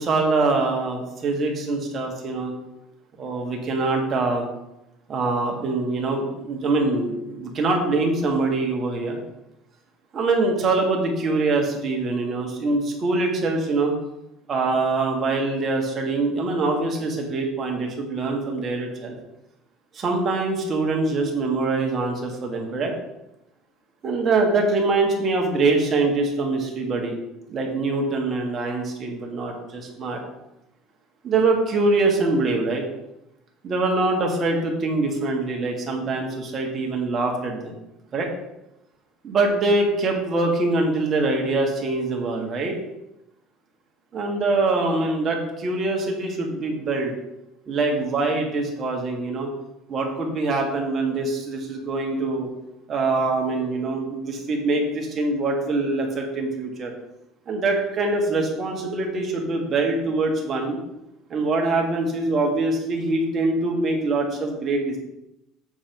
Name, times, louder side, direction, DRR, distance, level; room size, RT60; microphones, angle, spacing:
voice 1, 0.0-2.5 3.2-4.4 5.1-9.2 10.1-13.9 14.5-19.2 19.9-22.9 24.0-27.2 27.5-30.2 31.2-32.8 33.6-37.7 38.1-38.3 39.2-42.8 44.1-47.1 47.7-49.5 49.9-52.5 52.9-56.9 57.5-60.8 61.3-65.0, right 3 dB, 30° right, 1 dB, 1.5 m, -24 dB
7.1 x 4.4 x 5.3 m, 0.90 s
cardioid pair, 150°, 0 cm